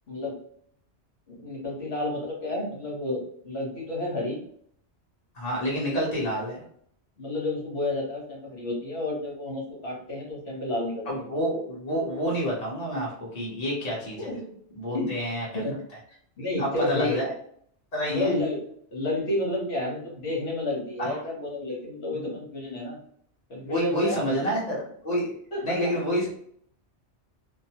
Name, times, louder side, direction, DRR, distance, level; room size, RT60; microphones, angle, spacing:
voice 1, 0.1-0.4 1.3-4.4 7.2-11.3 14.2-14.5 14.9-15.1 15.5-15.8 16.4-17.2 18.1-23.0 23.5-24.5 25.5-25.9, left 1 dB, 65° left, -3 dB, 1.5 m, -31 dB
voice 2, 5.3-6.6 11.0-14.3 14.8-15.6 16.6-17.3 17.9-18.3 21.0-21.1 22.1-22.4 23.6-25.3 25.6-26.3, equal, 35° left, -5 dB, 1.3 m, -28 dB
3.0 x 2.2 x 2.9 m, 0.64 s
omnidirectional pair, 1.2 m